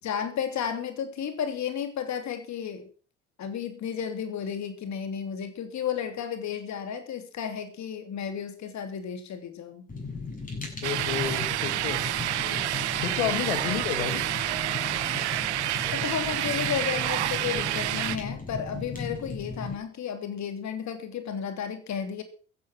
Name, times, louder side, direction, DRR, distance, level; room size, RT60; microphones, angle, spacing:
voice 1, 0.0-2.9 3.4-9.9 12.4-12.6 13.7-13.8 15.9-22.2, left 8 dB, 55° left, 8 dB, 3.1 m, -33 dB
Fire, 9.9-19.8, left 4 dB, 25° left, 7.7 m, -37 dB
voice 2, 10.8-12.0 13.0-14.2, left 11 dB, 80° left, 11 dB, 1.9 m, -31 dB
sound 1, 10.8-18.2, right 14 dB, 85° right, 0.8 m, -29 dB
15.0 x 9.6 x 6.3 m, 0.39 s
hypercardioid pair, 55°, 33 cm